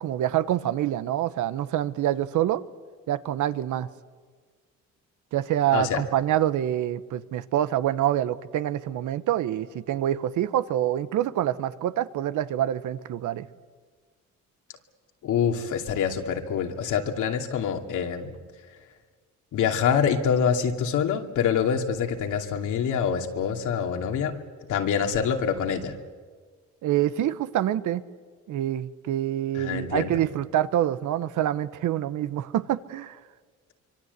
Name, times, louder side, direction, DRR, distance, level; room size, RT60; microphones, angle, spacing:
voice 1, 0.0-2.6 3.1-3.9 5.3-13.5 26.8-28.0 28.5-33.2, right 12 dB, 80° right, 14 dB, 1.1 m, -26 dB
voice 2, 5.7-6.0 15.2-18.3 19.5-24.3 24.7-25.9 29.5-30.2, left 7 dB, 80° left, 3 dB, 2.6 m, -25 dB
25.0 x 24.0 x 8.2 m, 1.5 s
cardioid pair, 90°, 30 cm